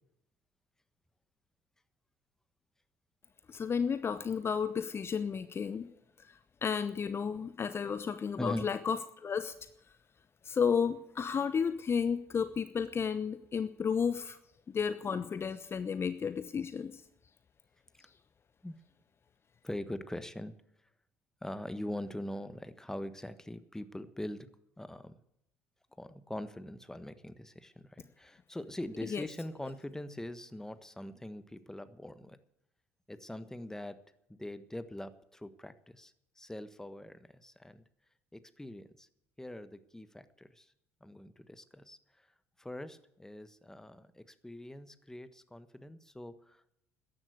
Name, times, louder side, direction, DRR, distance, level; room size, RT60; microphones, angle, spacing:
voice 1, 3.5-5.9 6.3-9.5 10.4-14.4 14.7-17.0 29.1-29.2, left 6 dB, 35° left, 12 dB, 0.9 m, -32 dB
voice 2, 19.6-20.6 21.4-24.5 24.8-25.2 26.0-32.4 33.1-34.0 34.3-37.8 38.3-39.1 39.4-40.7 41.0-42.3 42.6-46.8, left 1 dB, 5° left, 12 dB, 1.4 m, -43 dB
14.0 x 10.5 x 8.1 m, 0.77 s
figure-of-eight pair, 55°, 7 cm